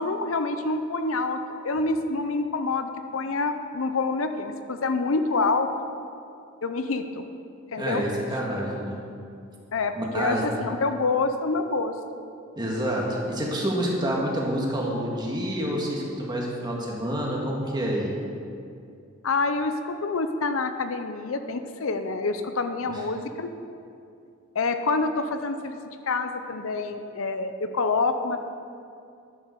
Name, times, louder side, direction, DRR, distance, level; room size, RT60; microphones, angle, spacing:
voice 1, 0.0-5.7 6.6-7.3 7.7-8.0 9.7-12.0 19.2-23.5 24.5-25.8 26.1-28.4, left 3 dB, 70° left, 8 dB, 0.6 m, -27 dB
voice 2, 7.8-9.0 10.0-10.4 12.6-18.1 22.9-23.0, equal, 20° right, -2 dB, 1.8 m, -28 dB
11.0 x 7.0 x 6.6 m, 2.5 s
head